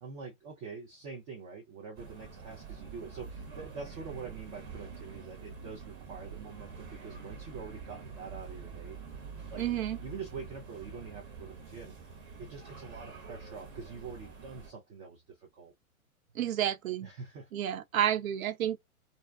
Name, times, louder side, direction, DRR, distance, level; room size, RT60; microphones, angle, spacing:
voice 1, 0.0-9.0 9.5-9.7 10.0-11.9 12.4-15.7 17.0-17.5, right 5 dB, 30° right, 0.5 m, -45 dB
sound 1, 2.0-14.7, right 5 dB, 50° right, 1.3 m, -46 dB
voice 2, 9.6-10.0 16.3-17.1 17.5-18.8, right 10 dB, 75° right, 0.6 m, -30 dB
2.6 x 2.1 x 2.3 m
hypercardioid pair, 125°, 42 cm